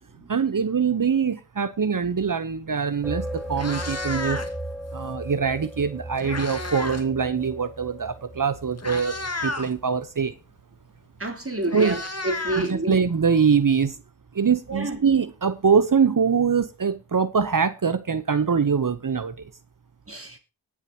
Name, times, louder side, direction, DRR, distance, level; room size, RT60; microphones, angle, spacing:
voice 1, 0.3-4.4 4.9-9.1 9.4-10.3 11.7-12.0 12.5-14.0 14.3-19.5, right 6 dB, 45° right, 1.0 m, -23 dB
Meow, 2.9-3.1 3.4-4.7 5.8-7.1 7.4-7.6 8.3-8.4 8.8-9.7 11.0-11.1 11.4-13.3, left 2 dB, 30° left, 2.0 m, -32 dB
sound 1, 3.0-9.6, right 1 dB, ahead, 4.1 m, -36 dB
voice 2, 11.2-12.0 12.2-13.0 14.7-15.0 20.1-20.4, right 2 dB, 30° right, 3.7 m, -28 dB
20.5 x 7.5 x 2.9 m
cardioid pair, 45°, 47 cm